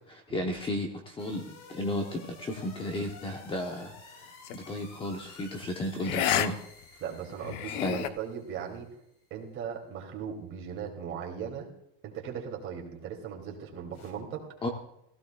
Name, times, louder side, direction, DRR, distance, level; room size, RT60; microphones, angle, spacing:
voice 1, 0.1-4.3 4.5-6.6 7.8-8.0 14.6-14.7, left 1 dB, 15° left, 3 dB, 0.8 m, -34 dB
sound 1, 1.2-9.0 13.9-14.1, left 3 dB, 60° left, 4.0 m, -52 dB
sound 2, 4.4-4.7 6.0-6.5 6.8-6.9 7.4-8.1, left 11 dB, 80° left, 0.8 m, -29 dB
voice 2, 7.0-8.9 9.3-11.7 12.0-14.5, right 7 dB, 35° right, 1 dB, 2.6 m, -38 dB
16.5 x 15.5 x 2.3 m, 0.80 s
cardioid pair, 160°, 36 cm